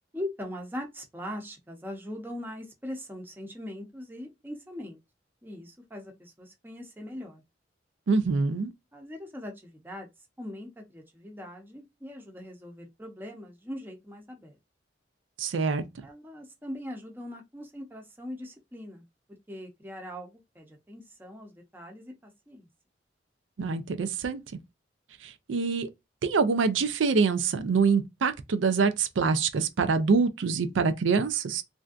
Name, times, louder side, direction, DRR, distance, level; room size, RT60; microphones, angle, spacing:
voice 1, 0.1-5.0 5.4-7.4 8.9-10.1 10.4-14.6 16.0-19.1 19.5-22.7, left 1 dB, 10° right, 0.7 m, -41 dB
voice 2, 8.1-8.7 15.4-16.1 23.6-24.4 25.2-25.9 26.2-31.6, right 5 dB, 85° right, 0.4 m, -25 dB
3.3 x 2.6 x 2.4 m
head